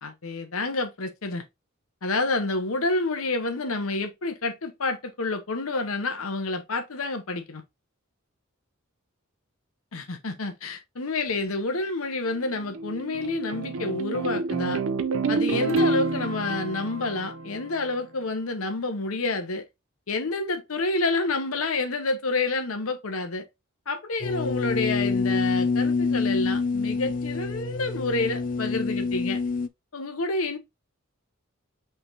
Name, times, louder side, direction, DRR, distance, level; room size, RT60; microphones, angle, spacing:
voice 1, 0.0-1.4 2.0-7.6 9.9-14.8 15.3-19.6 20.1-23.5 23.9-29.4 29.9-30.6, left 3 dB, 80° left, 1.0 m, -29 dB
sound 1, 12.3-17.9, right 3 dB, 70° right, 0.6 m, -28 dB
sound 2, 24.2-29.7, left 4 dB, 40° left, 0.3 m, -26 dB
5.7 x 3.4 x 2.7 m
head